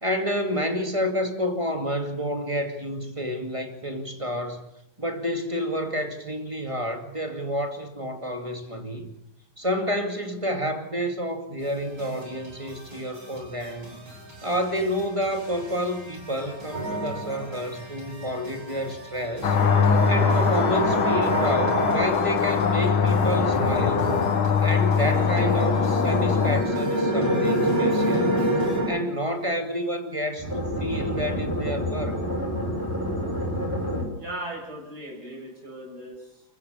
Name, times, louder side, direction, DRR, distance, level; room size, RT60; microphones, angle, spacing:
voice 1, 0.0-4.6 5.0-9.1 9.6-14.0 14.4-19.6 20.1-24.1 24.6-28.4 28.9-32.1, equal, 15° right, 4 dB, 2.4 m, -29 dB
sound 1, 11.6-28.8, right 1 dB, 70° right, 8.4 m, -45 dB
sound 2, 16.7-17.6 19.4-22.1 22.9-24.3 24.9-29.0 30.4-34.0, equal, 10° left, 6.7 m, -27 dB
sound 3, 19.4-26.6, left 6 dB, 75° left, 2.3 m, -22 dB
voice 2, 34.2-36.4, right 1 dB, 45° right, 0 dB, 7.6 m, -38 dB
30.0 x 15.0 x 6.9 m, 0.78 s
omnidirectional pair, 2.3 m